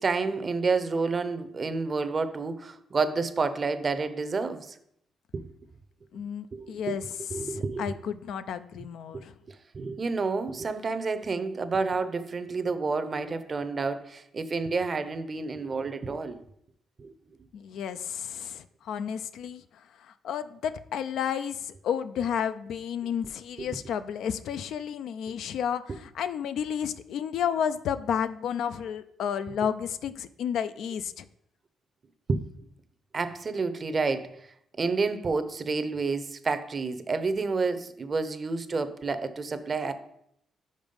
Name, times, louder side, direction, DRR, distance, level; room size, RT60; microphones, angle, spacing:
voice 1, 0.0-4.7 5.3-5.5 6.5-7.0 7.3-7.9 9.1-9.2 9.7-16.4 17.0-17.1 23.6-23.7 32.3-32.4 33.1-34.3 34.8-39.9, right 4 dB, 35° right, 0.6 m, -29 dB
voice 2, 6.1-7.0 7.4-9.3 17.5-19.6 20.0-31.3, left 8 dB, 75° left, 0.3 m, -32 dB
5.3 x 4.9 x 5.3 m
cardioid pair, 90°, 0 cm